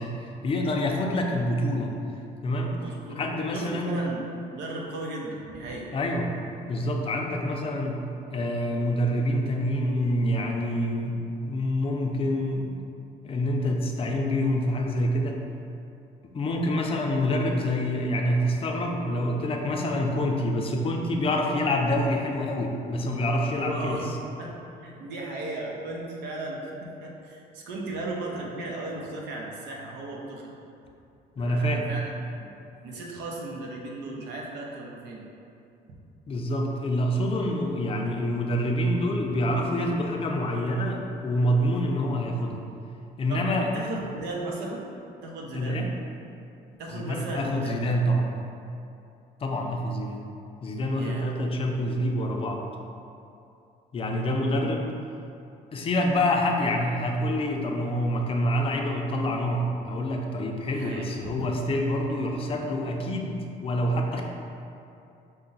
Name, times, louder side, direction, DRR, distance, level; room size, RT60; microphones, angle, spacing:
voice 1, 0.0-1.9 2.4-2.8 3.2-4.0 5.9-6.3 6.7-8.0 8.3-11.2 11.5-12.8 13.2-15.4 16.3-24.0 31.4-31.9 36.3-42.6 43.2-43.7 45.5-45.9 46.9-48.3 49.4-50.2 50.6-52.6 53.9-54.9 55.7-64.2, left 1 dB, 35° left, 1 dB, 0.5 m, -26 dB
voice 2, 2.8-3.2 3.5-4.3 4.5-5.9 23.6-24.1 24.4-30.5 31.4-32.1 32.4-32.5 32.8-35.2 43.3-43.5 43.7-44.9 45.2-45.9 46.8-47.9 51.0-51.3 54.3-54.7 60.7-61.8, right 2 dB, 85° right, -2 dB, 0.8 m, -36 dB
5.4 x 2.2 x 3.9 m, 2.7 s
cardioid pair, 110°, 17 cm